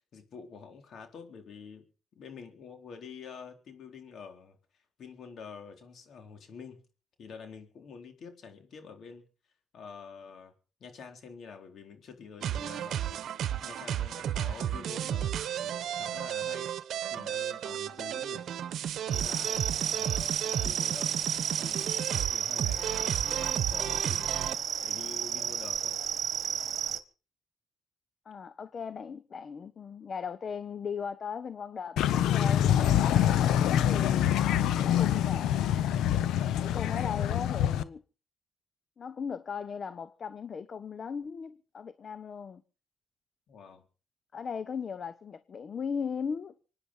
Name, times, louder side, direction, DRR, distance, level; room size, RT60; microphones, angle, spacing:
voice 1, 0.1-1.8 2.2-6.8 7.2-9.2 9.7-10.5 10.8-13.3 13.6-16.7 17.1-18.5 19.0-21.2 21.5-22.9 23.2-24.4 24.8-26.0 43.5-43.8, left 5 dB, 60° left, 4.0 m, -47 dB
sound 1, 12.4-24.6, right 10 dB, 70° right, 1.0 m, -33 dB
sound 2, 19.1-27.0, right 8 dB, 55° right, 1.4 m, -32 dB
voice 2, 28.3-34.3 34.7-35.5 36.6-38.0 39.0-42.6 44.3-46.5, left 6 dB, 45° left, 0.9 m, -38 dB
sound 3, 32.0-37.8, left 10 dB, 85° left, 0.9 m, -25 dB
25.0 x 9.9 x 5.6 m
cardioid pair, 90°, 0 cm